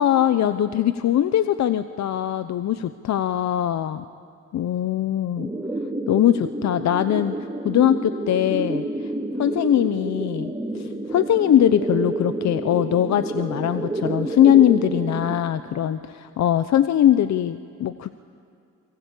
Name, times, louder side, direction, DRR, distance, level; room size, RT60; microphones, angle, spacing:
voice 1, 0.0-4.0 4.5-5.5 6.1-7.3 7.6-9.1 9.4-18.1, left 11 dB, 65° left, 11 dB, 0.9 m, -21 dB
sound 1, 5.4-15.4, right 2 dB, 10° right, 3.8 m, -29 dB
29.5 x 24.0 x 8.4 m, 2.5 s
cardioid pair, 90°, 30 cm